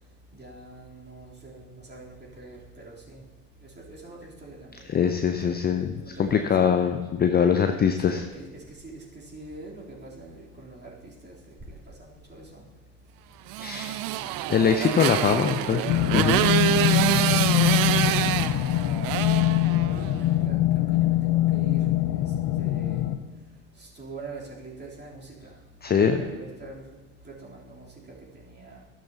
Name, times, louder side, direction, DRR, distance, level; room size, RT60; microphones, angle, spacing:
voice 1, 0.0-3.3 3.6-4.9 5.4-5.6 6.0-6.7 7.9-12.7 13.4-14.4 14.8-18.8 19.9-23.1 23.7-25.6 26.1-28.9, right 2 dB, 20° right, -5 dB, 3.6 m, -45 dB
voice 2, 4.8-8.2 13.6-14.0 14.5-16.5 25.8-26.2, left 7 dB, 20° left, 7 dB, 0.6 m, -23 dB
Motorcycle, 13.5-20.2, right 14 dB, 45° right, 0.6 m, -26 dB
sound 1, 15.9-23.2, left 14 dB, 45° left, 0.9 m, -23 dB
13.0 x 12.0 x 2.9 m, 1.2 s
figure-of-eight pair, 65°, 47 cm